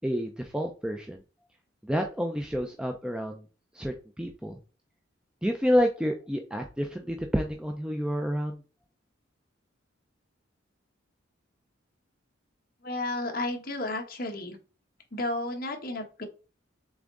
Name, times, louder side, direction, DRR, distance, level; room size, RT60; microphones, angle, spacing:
voice 1, 0.0-1.2 1.8-3.4 3.7-4.6 5.4-8.6, equal, 5° right, 3 dB, 0.5 m, -29 dB
voice 2, 12.8-14.6 15.1-16.2, left 2 dB, 50° left, 2 dB, 1.5 m, -32 dB
7.0 x 3.7 x 3.8 m, 0.33 s
head